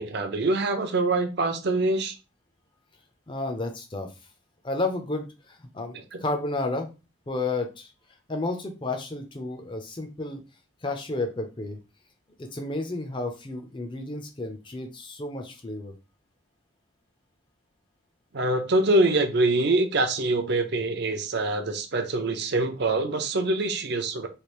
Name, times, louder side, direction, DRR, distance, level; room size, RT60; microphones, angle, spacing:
voice 1, 0.0-2.1 6.1-6.2 18.3-24.3, right 2 dB, 55° right, 0.5 m, -24 dB
voice 2, 3.3-4.1 4.6-6.9 7.3-7.9 8.3-10.4 10.8-11.8 12.4-15.9, left 2 dB, 25° left, 0.5 m, -31 dB
3.2 x 2.4 x 3.0 m
head